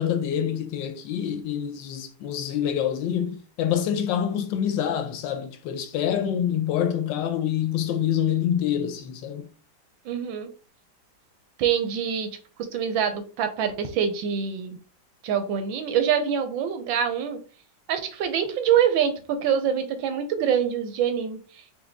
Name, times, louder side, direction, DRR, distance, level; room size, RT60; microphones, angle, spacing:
voice 1, 0.0-9.5, left 9 dB, 75° left, 1.2 m, -26 dB
voice 2, 10.0-10.5 11.6-12.3 12.7-14.8 15.2-17.4 17.9-21.4, right 8 dB, 90° right, 1.4 m, -25 dB
4.7 x 2.3 x 3.5 m
omnidirectional pair, 2.1 m